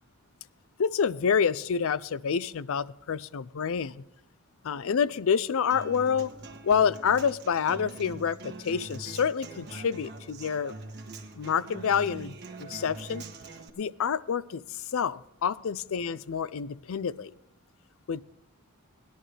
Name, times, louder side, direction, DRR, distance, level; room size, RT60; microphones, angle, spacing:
voice 1, 0.8-4.0 4.6-6.3 6.6-10.7 11.4-13.2 13.8-17.3 18.1-18.2, left 7 dB, 65° left, 19 dB, 0.4 m, -28 dB
Human voice / Acoustic guitar, 5.7-13.7, right 3 dB, 50° right, 1.4 m, -43 dB
19.0 x 11.5 x 3.4 m, 0.80 s
head